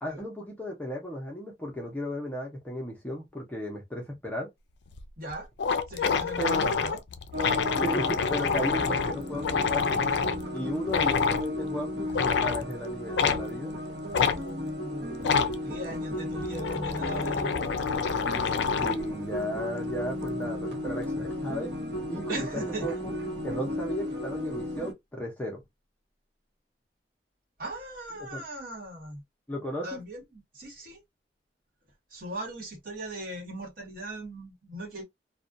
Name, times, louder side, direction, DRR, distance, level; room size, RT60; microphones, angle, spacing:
voice 1, 0.0-4.5 6.4-6.7 7.8-10.0 10.5-13.7 18.8-21.7 22.1-22.5 22.8-22.9 23.4-25.6 28.3-28.4 29.5-30.0, equal, 10° left, 0.6 m, -35 dB
sound 1, 4.9-5.0 5.3-5.4 5.6-10.4 10.9-11.4 12.1-12.6 13.2-13.4 14.1-14.4 15.2-15.5 16.3-19.1, left 5 dB, 70° left, 0.4 m, -27 dB
voice 2, 5.2-5.5 5.9-7.0 10.6-11.2 14.0-17.6 22.3-22.9 27.6-29.2 29.8-31.0 32.1-35.0, right 1 dB, 50° right, 1.1 m, -39 dB
sound 2, 7.3-24.9, left 1 dB, 70° right, 0.8 m, -35 dB
2.4 x 2.2 x 2.5 m
head